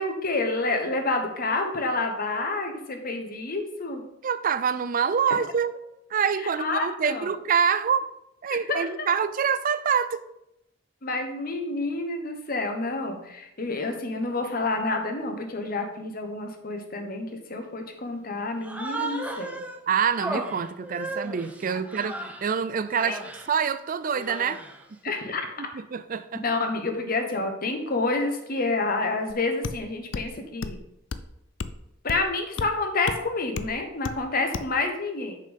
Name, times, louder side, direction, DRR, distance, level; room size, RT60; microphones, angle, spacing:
voice 1, 0.0-4.0 6.4-7.3 8.7-8.8 11.0-19.6 21.7-21.8 23.0-23.2 25.0-25.7 26.4-30.8 32.0-35.4, left 3 dB, 50° left, 1.1 m, -29 dB
voice 2, 4.2-5.8 6.1-8.0 8.4-10.3 19.9-23.2 23.5-24.6 25.7-26.4, right 7 dB, 45° right, 0.4 m, -26 dB
Human voice, 18.6-19.8 20.2-22.5 22.9-23.5 24.1-24.8, right 2 dB, 5° right, 0.9 m, -35 dB
sound 1, 29.3-29.4 29.6-29.8 30.1-30.3 30.6-30.8 31.1-31.3 31.6-31.8 32.1-32.3 32.6-32.7 33.1-33.2 33.6-33.7 34.0-34.2 34.5-34.7, left 4 dB, 65° left, 0.5 m, -32 dB
6.5 x 5.4 x 5.4 m
head